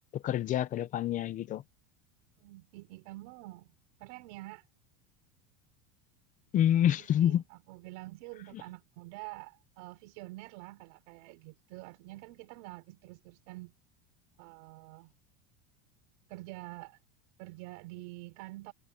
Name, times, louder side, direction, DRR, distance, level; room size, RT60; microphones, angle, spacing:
voice 1, 0.1-1.6 6.5-7.4, left 11 dB, 20° left, 0.5 m, -27 dB
voice 2, 2.4-3.7 4.0-4.6 6.7-13.7 14.4-15.1 16.3-17.0 17.4-18.7, right 21 dB, 60° right, 4.3 m, -47 dB
cardioid pair, 175°, 40 cm